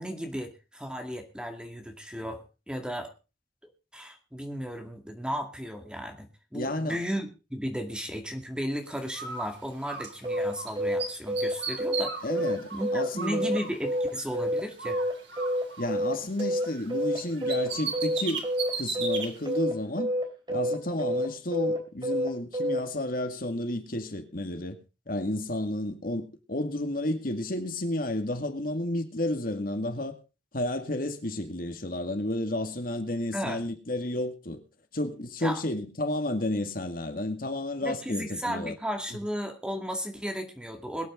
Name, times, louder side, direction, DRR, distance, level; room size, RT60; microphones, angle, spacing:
voice 1, 0.0-3.1 3.9-12.1 12.7-15.0 33.3-33.6 35.4-35.6 37.8-41.1, equal, 5° right, 2.2 m, -35 dB
voice 2, 6.5-7.0 12.2-13.5 15.8-18.5 18.8-20.1 20.5-24.8 25.1-30.2 30.5-34.6 34.9-38.8, left 1 dB, 55° left, 2.1 m, -31 dB
Bird, 9.1-10.7 11.0-14.4 14.8-16.9 17.2-19.3, right 5 dB, 85° right, 3.6 m, -37 dB
sound 1, 10.2-22.8, equal, 25° right, 2.7 m, -28 dB
22.0 x 9.0 x 3.8 m
head